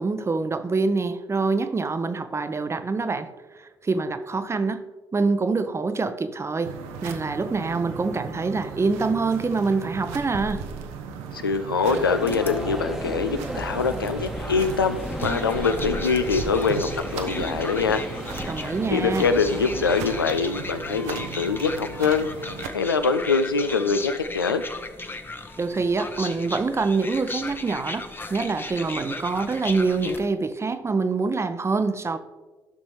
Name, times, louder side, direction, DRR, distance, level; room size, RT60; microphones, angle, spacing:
voice 1, 0.0-3.3 3.6-4.8 5.1-6.7 7.0-10.6 18.5-19.3 25.6-32.2, right 4 dB, 25° right, 11 dB, 0.7 m, -25 dB
sound 1, 6.6-22.7, right 6 dB, 65° right, 0.7 m, -37 dB
voice 2, 11.3-18.0 18.9-22.3 22.7-24.6, left 5 dB, 85° left, 9 dB, 0.4 m, -24 dB
sound 2, 11.8-20.2, equal, ahead, 1.1 m, -35 dB
sound 3, 12.3-30.3, left 2 dB, 20° left, 0.8 m, -36 dB
14.0 x 6.3 x 3.2 m, 1.3 s
figure-of-eight pair, 45°, 11 cm